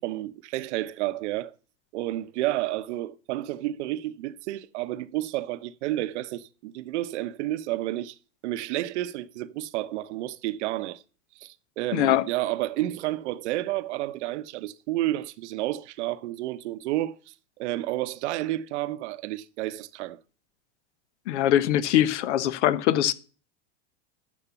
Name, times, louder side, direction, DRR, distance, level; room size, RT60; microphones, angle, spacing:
voice 1, 0.0-1.5 1.9-8.2 8.4-11.0 11.4-20.2, right 15 dB, 70° right, 0.9 m, -31 dB
voice 2, 11.9-12.2 21.3-23.1, left 12 dB, 75° left, 1.1 m, -22 dB
12.5 x 6.6 x 7.0 m
supercardioid pair, 120°, 35 cm